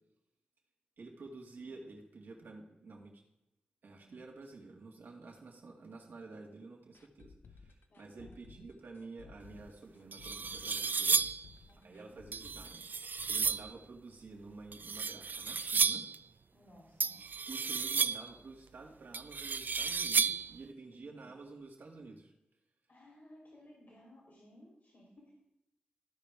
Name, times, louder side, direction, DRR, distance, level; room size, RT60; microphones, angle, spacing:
voice 1, 1.0-3.2 3.8-11.2 11.8-12.9 13.3-16.0 17.5-22.3, right 3 dB, 80° right, 0 dB, 2.0 m, -50 dB
sound 1, 6.9-14.7 14.9-15.0 15.4-15.5, left 4 dB, 85° left, 0.7 m, -57 dB
voice 2, 7.9-8.3 11.7-12.1 16.5-17.2 21.1-21.3 22.9-25.3, left 1 dB, 65° left, -3 dB, 3.2 m, -59 dB
sound 2, 9.6-9.7 10.1-11.5 12.3-13.7 14.7-16.2 17.0-18.4 19.1-20.6, right 5 dB, 60° right, 0.3 m, -33 dB
15.0 x 5.2 x 3.5 m, 0.91 s
cardioid pair, 55°, 3 cm